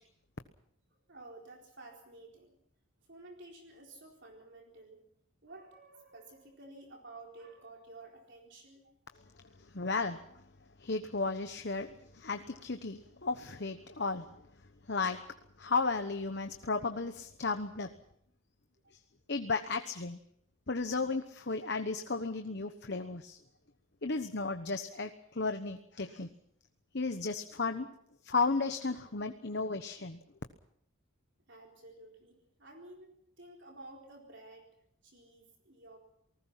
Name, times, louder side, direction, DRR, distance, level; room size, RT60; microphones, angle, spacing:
voice 1, 1.1-2.6 3.0-5.0 5.4-8.9 18.8-18.9 31.5-34.7 35.0-36.0, right 2 dB, 55° right, 1 dB, 4.2 m, -52 dB
voice 2, 9.6-10.4 10.8-14.3 14.9-15.2 15.6-17.9 19.3-20.2 20.7-23.4 24.0-26.3 26.9-27.9 28.2-30.2, left 3 dB, 50° left, 7 dB, 1.1 m, -34 dB
28.5 x 19.5 x 5.8 m, 0.69 s
head